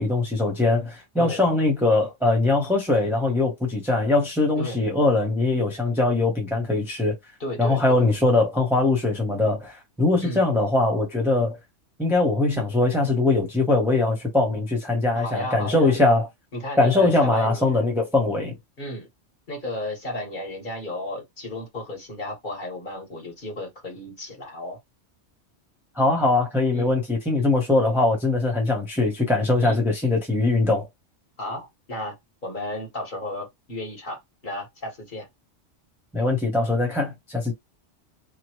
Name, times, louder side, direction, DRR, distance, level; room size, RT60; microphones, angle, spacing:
voice 1, 0.0-7.1 7.6-11.6 12.0-16.3 16.8-18.6 26.0-30.9 36.1-37.5, left 2 dB, ahead, 0.7 m, -21 dB
voice 2, 7.4-8.1 10.2-10.5 15.2-15.9 16.5-17.9 18.8-19.1 19.5-24.8 26.7-26.9 29.6-29.8 31.4-32.2 32.4-35.3, left 1 dB, 45° left, 1.5 m, -33 dB
2.9 x 2.1 x 3.0 m
omnidirectional pair, 1.2 m